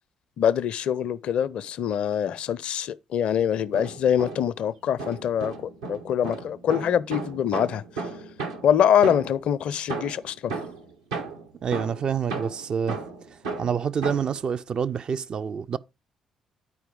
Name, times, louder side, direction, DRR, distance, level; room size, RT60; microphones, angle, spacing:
voice 1, 0.4-7.8 8.6-10.6, left 9 dB, 55° left, 0.4 m, -24 dB
sound 1, 3.5-4.6 5.0-9.5 9.9-14.4, right 4 dB, 75° right, 1.0 m, -35 dB
voice 2, 11.6-13.0 13.3-15.8, right 7 dB, 40° right, 0.4 m, -27 dB
9.8 x 4.6 x 5.0 m
figure-of-eight pair, 45°, 2 cm